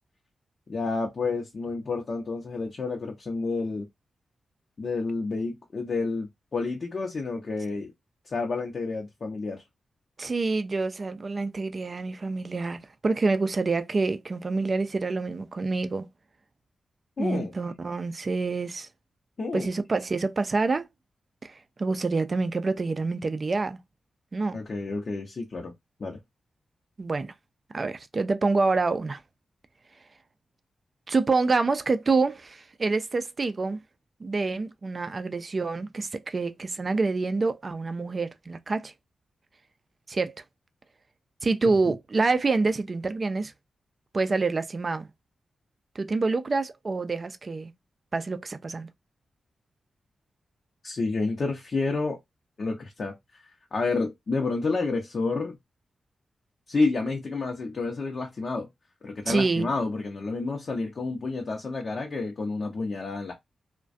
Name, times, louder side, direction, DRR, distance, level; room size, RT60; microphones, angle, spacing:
voice 1, 0.7-3.9 4.8-7.9 8.3-9.6 17.2-17.5 19.4-19.7 24.5-25.7 26.0-26.2 50.8-52.2 52.6-53.1 53.7-55.6 56.7-58.7 59.0-63.3, left 3 dB, 55° left, 0.6 m, -29 dB
voice 2, 10.2-16.1 17.2-18.9 19.5-20.9 21.4-23.8 24.3-24.6 27.0-27.3 27.7-29.2 31.1-33.8 34.2-38.9 40.1-40.3 41.4-43.5 44.1-45.1 46.0-47.7 48.1-48.9 59.3-59.7, right 3 dB, 45° right, 0.3 m, -27 dB
2.3 x 2.1 x 2.5 m
supercardioid pair, 40°, 0 cm